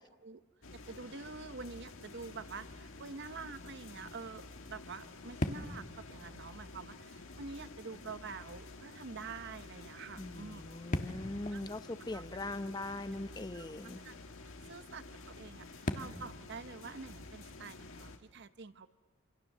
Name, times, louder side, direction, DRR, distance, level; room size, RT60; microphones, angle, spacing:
sound 1, 0.6-18.2, left 3 dB, 80° left, 1.8 m, -51 dB
voice 1, 0.7-10.9 11.5-11.8 12.1-12.2 13.5-13.7 14.0-14.1 14.4-18.9, right 4 dB, 60° right, 12 dB, 0.9 m, -47 dB
sound 2, 1.5-18.1, left 1 dB, 40° left, 1.4 m, -46 dB
voice 2, 10.2-14.0, left 2 dB, 20° left, 11 dB, 0.7 m, -41 dB
27.5 x 27.0 x 6.7 m, 1.4 s
head